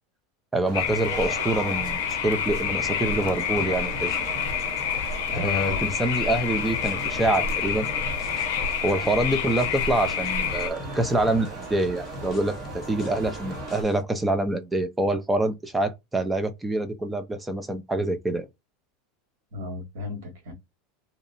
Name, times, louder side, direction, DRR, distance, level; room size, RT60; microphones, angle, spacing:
voice 1, 0.5-4.1 5.3-7.9 8.8-12.6 12.9-18.5, right 2 dB, 10° right, 0.4 m, -26 dB
sound 1, 0.6-13.8, right 2 dB, 40° right, 0.9 m, -37 dB
sound 2, 0.7-10.7, left 8 dB, 80° left, 0.5 m, -28 dB
sound 3, 3.1-14.0, left 5 dB, 25° left, 0.7 m, -45 dB
voice 2, 5.3-6.0 19.5-20.5, left 1 dB, 75° right, 1.4 m, -33 dB
2.6 x 2.0 x 2.5 m
supercardioid pair, 160°, 0 cm